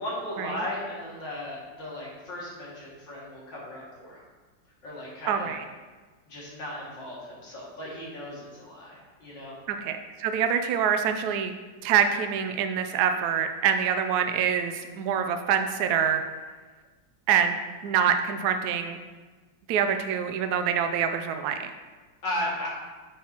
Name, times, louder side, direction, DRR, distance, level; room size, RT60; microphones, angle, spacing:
voice 1, 0.0-4.2 4.8-5.6 6.2-9.5 22.2-22.7, left 1 dB, 85° left, -6 dB, 3.0 m, -36 dB
voice 2, 5.3-5.6 9.7-11.5 11.8-16.2 17.3-17.6 17.8-19.0 19.7-21.7, right 8 dB, 70° right, 7 dB, 1.0 m, -25 dB
8.4 x 6.4 x 2.9 m, 1.3 s
omnidirectional pair, 2.0 m